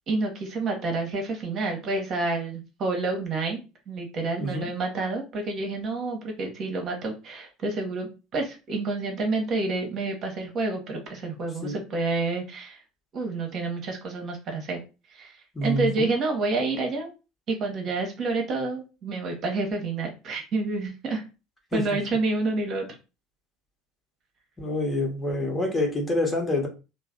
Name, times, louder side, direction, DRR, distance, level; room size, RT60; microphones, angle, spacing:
voice 1, 0.1-3.6 3.9-12.8 13.1-14.8 15.1-15.3 15.6-17.1 17.5-21.2 21.7-22.8, right 3 dB, 40° right, 3 dB, 1.0 m, -29 dB
voice 2, 4.4-4.7 11.6-11.8 15.5-16.1 21.7-22.0 24.6-26.7, left 1 dB, 15° left, 2 dB, 1.1 m, -27 dB
3.1 x 2.1 x 3.7 m, 0.31 s
figure-of-eight pair, 65°, 0 cm